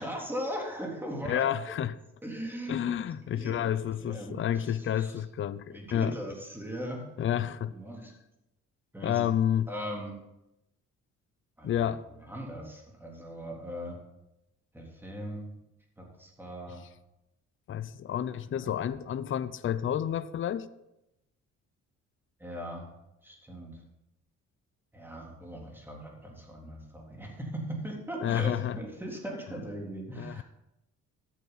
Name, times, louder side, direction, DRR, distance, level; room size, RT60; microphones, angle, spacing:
voice 1, 0.0-1.4 2.2-3.0 3.3-5.1 5.7-7.1 7.7-8.1 8.9-9.3 9.7-10.2 11.6-11.9 12.2-14.0 14.7-15.5 16.0-16.8 18.2-18.8 22.4-22.9 23.2-23.8 24.9-30.4, equal, 5° right, 3.5 m, -39 dB
voice 2, 1.2-2.0 2.7-6.2 7.2-7.7 9.0-9.7 11.6-12.0 17.7-20.7 28.2-28.8 30.2-30.4, left 10 dB, 45° left, 0.5 m, -30 dB
13.5 x 8.4 x 4.1 m
cardioid pair, 90°, 30 cm